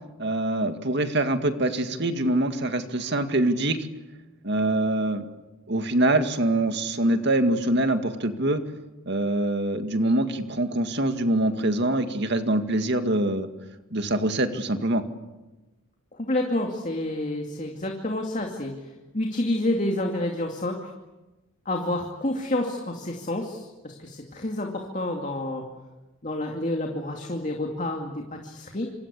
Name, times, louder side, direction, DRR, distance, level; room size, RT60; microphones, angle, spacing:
voice 1, 0.2-3.9 4.4-5.3 5.7-8.6 9.1-13.5 13.9-15.0, right 1 dB, 55° right, 7 dB, 2.1 m, -24 dB
voice 2, 16.2-20.9 21.7-25.6 26.2-28.9, left 1 dB, 35° left, 2 dB, 2.5 m, -29 dB
27.5 x 25.0 x 8.4 m, 1.1 s
head